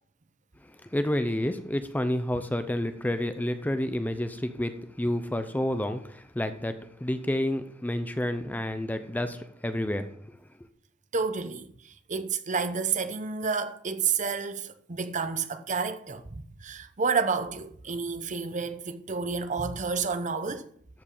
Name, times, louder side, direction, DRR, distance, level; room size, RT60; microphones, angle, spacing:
voice 1, 0.8-10.4, left 1 dB, 10° left, 0.6 m, -30 dB
voice 2, 11.1-20.7, right 5 dB, 40° right, 0.8 m, -30 dB
13.5 x 5.3 x 5.5 m
head